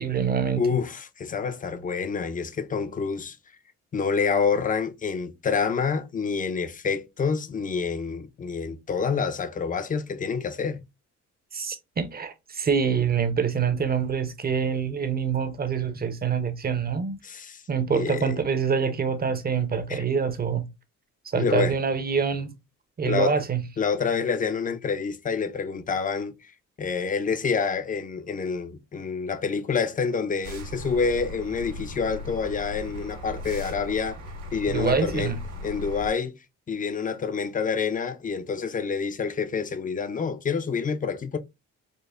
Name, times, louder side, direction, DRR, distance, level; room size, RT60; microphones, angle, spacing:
voice 1, 0.0-0.6 11.5-17.2 17.7-20.6 21.3-22.5 23.0-23.6 34.7-35.4, right 6 dB, 30° right, 0.6 m, -25 dB
voice 2, 0.6-3.4 3.9-10.8 17.2-17.6 17.9-18.4 19.9-20.1 21.3-21.8 23.0-23.3 23.8-26.4 26.8-34.2 34.5-35.3 35.6-36.3 36.7-41.4, left 5 dB, 25° left, 0.5 m, -27 dB
sound 1, 30.4-36.1, left 1 dB, 75° right, 1.6 m, -37 dB
5.1 x 2.1 x 2.4 m
cardioid pair, 90°, 30 cm